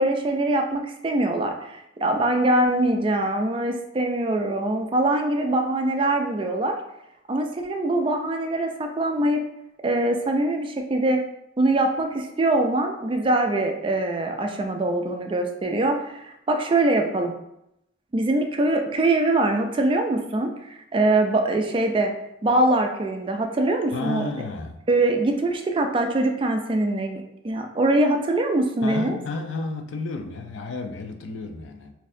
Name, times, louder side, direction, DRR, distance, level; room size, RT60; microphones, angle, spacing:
voice 1, 0.0-6.8 7.3-9.4 9.8-11.2 11.6-17.3 18.1-22.1 22.4-24.3 24.9-29.2, right 2 dB, 25° right, 4 dB, 0.3 m, -23 dB
voice 2, 23.9-24.8 28.8-31.9, left 3 dB, 70° left, 5 dB, 0.4 m, -32 dB
4.1 x 2.6 x 2.6 m, 0.83 s
head